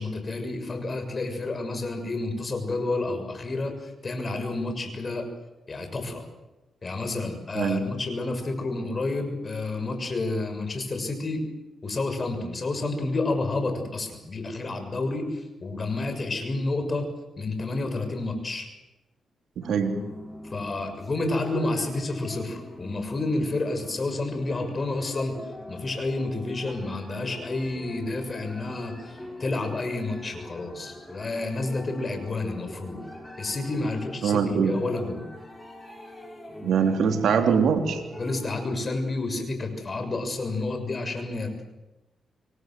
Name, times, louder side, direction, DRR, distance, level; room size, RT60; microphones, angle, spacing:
voice 1, 0.0-5.3 5.7-6.2 6.8-11.4 11.8-17.1 17.4-18.7 20.5-25.4 25.7-33.0 33.4-35.2 38.2-41.6, left 2 dB, 40° left, 7 dB, 6.8 m, -30 dB
voice 2, 7.6-7.9 19.6-20.0 34.2-34.8 36.6-38.0, right 6 dB, 80° right, 5 dB, 3.7 m, -23 dB
sound 1, 19.6-38.4, left 1 dB, 10° left, 7.3 m, -43 dB
27.5 x 23.5 x 7.9 m, 1.0 s
cardioid pair, 65°, 0 cm